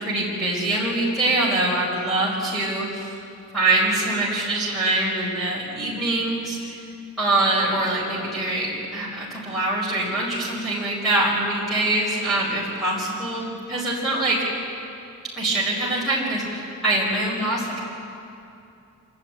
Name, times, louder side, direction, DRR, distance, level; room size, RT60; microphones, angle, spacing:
voice 1, 0.0-3.1 3.5-6.7 7.2-14.5 15.4-17.8, right 2 dB, ahead, -7 dB, 4.7 m, -24 dB
27.5 x 12.0 x 9.1 m, 2.6 s
head